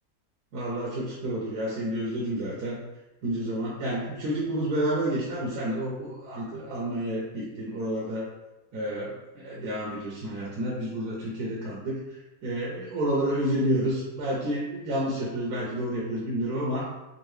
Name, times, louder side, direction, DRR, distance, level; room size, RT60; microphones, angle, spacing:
voice 1, 0.5-2.8 3.2-8.3 8.7-11.9 12.4-16.9, right 1 dB, 75° right, -5 dB, 1.2 m, -30 dB
3.7 x 2.6 x 3.1 m, 0.99 s
omnidirectional pair, 1.7 m